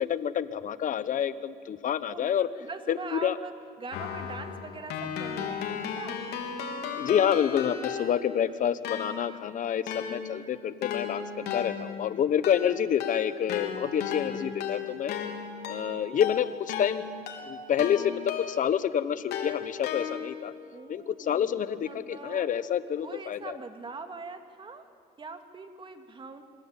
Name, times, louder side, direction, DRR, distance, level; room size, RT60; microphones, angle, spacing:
voice 1, 0.0-2.5 2.9-3.4 6.9-15.1 15.7-17.1 17.4-20.5 20.9-23.6, left 9 dB, 50° left, 14 dB, 1.1 m, -28 dB
voice 2, 2.1-3.5 3.8-6.2 20.7-22.5 23.0-24.8 25.2-26.4, right 4 dB, 30° right, 6 dB, 2.4 m, -42 dB
Keyboard (musical), 3.9-8.4 8.8-18.8 19.3-20.5, left 7 dB, 75° left, 3.4 m, -35 dB
26.0 x 22.5 x 9.1 m, 2.2 s
cardioid pair, 110°, 17 cm